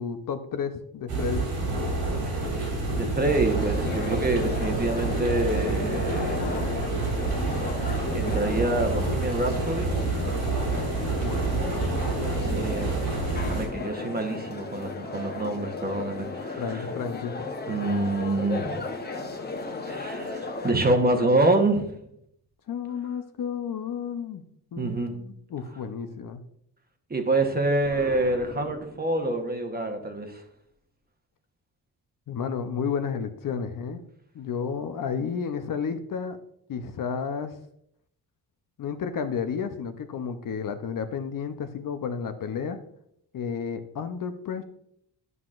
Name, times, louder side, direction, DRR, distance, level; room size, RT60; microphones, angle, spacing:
voice 1, 0.0-1.5 11.0-12.0 16.6-17.5 22.7-24.4 24.7-26.4 32.3-34.0 34.3-36.4 36.7-37.5 38.8-42.8 43.3-44.6, left 6 dB, 55° left, 8 dB, 0.7 m, -32 dB
sound 1, 1.1-13.7, right 3 dB, 80° right, 3.3 m, -28 dB
voice 2, 2.2-6.4 8.1-10.0 12.4-13.1 13.3-16.9 17.7-18.8 19.8-21.9 24.8-25.1 27.1-30.4, right 2 dB, 25° right, 4 dB, 1.1 m, -26 dB
sound 2, 3.4-20.7, left 3 dB, 25° left, 0.9 m, -35 dB
Explosion, 27.8-29.7, left 3 dB, 90° left, 2.0 m, -42 dB
11.0 x 5.8 x 2.5 m, 0.72 s
cardioid pair, 100°, 39 cm